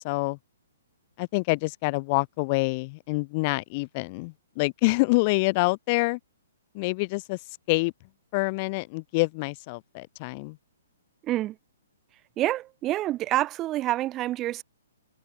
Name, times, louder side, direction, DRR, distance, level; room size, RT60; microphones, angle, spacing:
voice 1, 0.0-0.4 1.2-6.2 6.7-7.4 7.7-7.9 8.3-10.6, left 27 dB, 35° left, 1.0 m, -26 dB
voice 2, 11.2-11.5 12.4-14.6, right 15 dB, 25° right, 1.2 m, -27 dB
hypercardioid pair, 135°, 0 cm